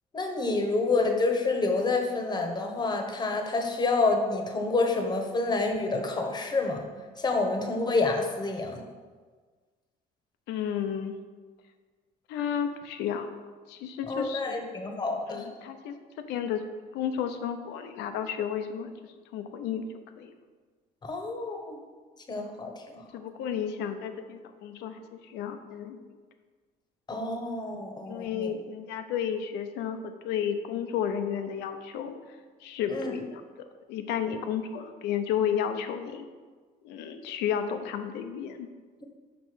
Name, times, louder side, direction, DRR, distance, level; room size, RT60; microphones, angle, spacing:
voice 1, 0.1-6.8 7.2-8.8 14.1-15.4 21.0-21.8 22.3-23.0 27.1-28.5 32.9-33.2, left 3 dB, 25° left, 4 dB, 1.0 m, -28 dB
voice 2, 10.5-11.2 12.3-13.3 13.7-14.6 15.3-15.9 16.3-16.6 16.9-18.9 19.3-19.8 20.2-20.3 23.1-26.0 28.1-32.2 32.6-33.4 33.9-36.3 36.8-38.7, left 8 dB, 90° left, 8 dB, 0.7 m, -32 dB
6.0 x 5.1 x 4.9 m, 1.5 s
cardioid pair, 110°, 17 cm